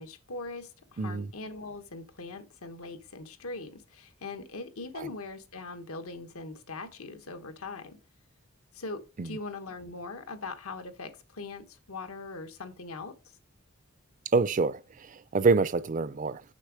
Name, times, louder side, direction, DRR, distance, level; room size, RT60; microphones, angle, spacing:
voice 1, 0.0-8.0 8.7-13.1, left 3 dB, 90° left, 1.2 m, -41 dB
voice 2, 1.0-1.3 5.0-5.1 9.2-9.4 14.3-16.4, right 4 dB, 35° right, 0.4 m, -27 dB
6.6 x 6.0 x 4.8 m
head